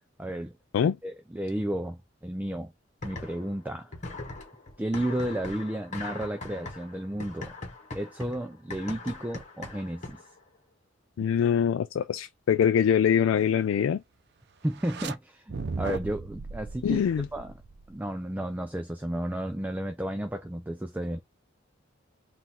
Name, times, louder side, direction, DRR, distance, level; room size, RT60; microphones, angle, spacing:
voice 1, 0.2-0.6 1.0-2.7 3.0-3.9 4.8-7.5 7.9-10.2 14.6-17.0 17.3-17.5 17.9-21.2, right 1 dB, 10° right, 0.4 m, -32 dB
sound 1, 3.0-3.6 3.9-10.4, left 2 dB, 40° left, 1.2 m, -41 dB
voice 2, 11.2-14.0 16.8-17.3, left 8 dB, 85° left, 0.3 m, -24 dB
sound 2, 14.7-15.1 15.5-18.1, right 4 dB, 60° right, 0.5 m, -37 dB
3.8 x 2.5 x 4.3 m
head